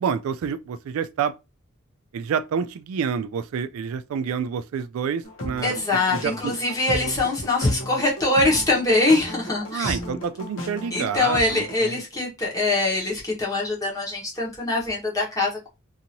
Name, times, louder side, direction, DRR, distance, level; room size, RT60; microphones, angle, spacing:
voice 1, 0.0-1.3 2.1-5.8 6.1-6.5 9.7-12.0, right 7 dB, 80° right, 0.3 m, -28 dB
sound 1, 5.2-11.8, equal, 65° left, 0.9 m, -35 dB
voice 2, 5.6-10.0 10.9-15.7, left 2 dB, 15° left, 1.0 m, -23 dB
2.7 x 2.6 x 2.8 m
head